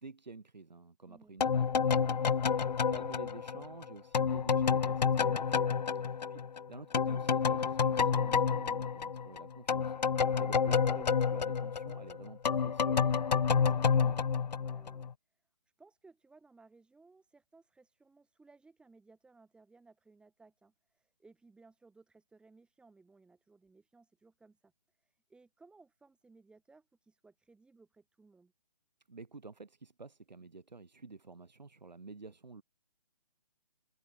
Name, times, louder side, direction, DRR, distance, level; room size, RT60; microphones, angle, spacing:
voice 1, 0.0-14.2 29.1-32.6, right 4 dB, 85° right, 5.5 m, -50 dB
voice 2, 1.1-1.4 6.0-6.1 13.6-14.0 14.6-15.4 15.8-28.5, right 3 dB, 5° right, 7.9 m, -62 dB
sound 1, 1.4-6.6 6.9-15.1, left 6 dB, 80° left, 0.8 m, -29 dB
hypercardioid pair, 150°, 21 cm